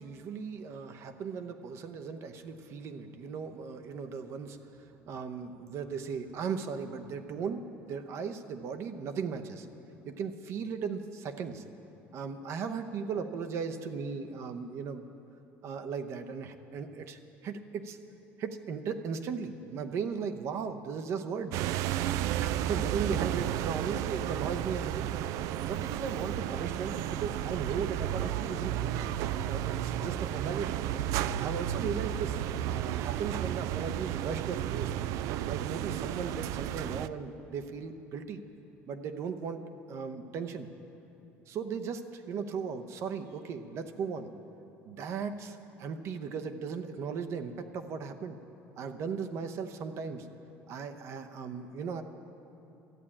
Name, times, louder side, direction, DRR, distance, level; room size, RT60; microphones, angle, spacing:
voice 1, 0.0-4.7 5.1-9.7 10.0-11.6 12.1-15.0 15.6-18.0 18.4-21.6 22.4-25.1 25.7-29.1 29.4-30.8 31.1-35.0 35.5-38.4 38.9-39.6 39.9-40.7 41.5-44.3 44.8-48.4 48.8-50.3 50.7-52.0, right 6 dB, 50° right, 8 dB, 0.8 m, -37 dB
sound 1, 21.5-37.1, right 11 dB, 70° right, 0.3 m, -33 dB
13.5 x 8.5 x 8.7 m, 2.9 s
cardioid pair, 125°, 6 cm